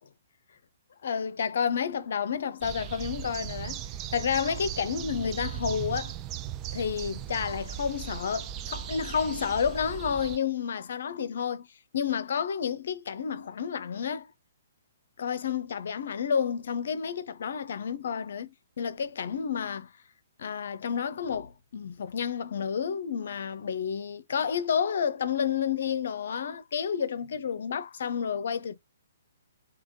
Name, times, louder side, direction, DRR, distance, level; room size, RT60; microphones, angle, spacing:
voice 1, 1.0-3.9 4.1-6.1 6.7-11.7 11.9-14.3 15.2-18.5 18.8-19.9 20.4-28.8, left 7 dB, 55° left, 0.6 m, -30 dB
sound 1, 2.6-10.4, right 10 dB, 25° right, 0.4 m, -38 dB
3.5 x 2.9 x 3.7 m
figure-of-eight pair, 125°, 0 cm